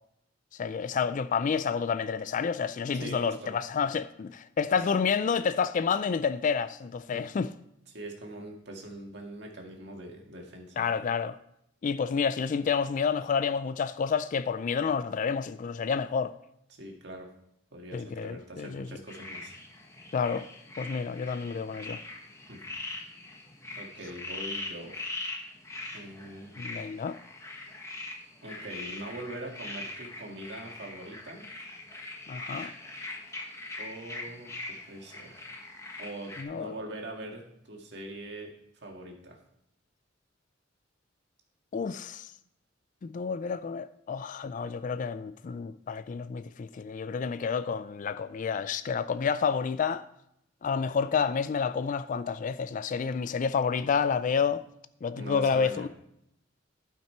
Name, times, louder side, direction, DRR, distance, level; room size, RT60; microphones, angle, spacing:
voice 1, 0.5-7.5 10.8-11.4 11.8-16.3 17.9-19.0 20.1-20.4 20.8-22.0 26.6-27.2 32.3-32.7 36.4-36.7 41.7-42.3 43.0-50.1 50.6-54.6 55.0-55.9, left 6 dB, 45° left, 0.3 m, -29 dB
voice 2, 2.9-3.6 4.7-4.8 7.1-7.2 7.9-10.8 16.8-17.3 17.7-19.5 22.5-22.6 23.8-25.0 25.9-26.5 28.4-31.5 33.8-35.5 36.0-39.4 55.1-55.9, right 1 dB, 65° right, 1.8 m, -42 dB
sound 1, 19.1-36.4, left 2 dB, 15° left, 1.3 m, -41 dB
12.0 x 5.8 x 4.5 m
head